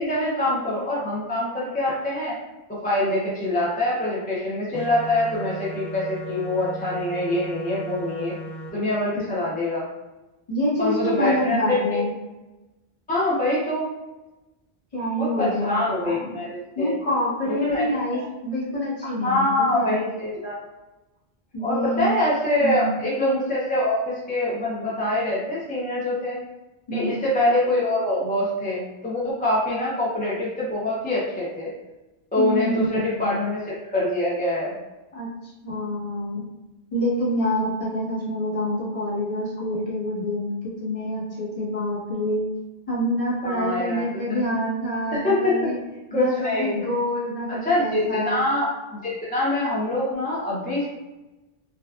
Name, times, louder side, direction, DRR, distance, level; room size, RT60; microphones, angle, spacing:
voice 1, 0.0-2.4 2.7-8.3 8.7-9.8 10.8-12.0 13.1-13.9 15.2-16.9 17.6-18.2 19.0-20.6 21.6-26.4 26.9-31.7 32.3-34.7 43.4-44.0 44.3-44.4 45.1-45.6 46.1-46.7 47.5-48.7 49.0-50.9, left 1 dB, 15° left, -7 dB, 0.4 m, -24 dB
sound 1, 4.7-8.7, right 1 dB, 75° left, 1.3 m, -37 dB
voice 2, 10.5-12.2 14.9-16.4 16.7-20.0 21.5-22.1 22.6-23.0 26.9-27.1 32.3-32.9 33.2-33.4 35.1-35.3 35.6-36.4 36.9-40.5 40.8-42.5 42.9-45.8 46.1-48.5, equal, 35° left, -8 dB, 1.0 m, -26 dB
2.7 x 2.2 x 2.3 m, 1.1 s
omnidirectional pair, 1.1 m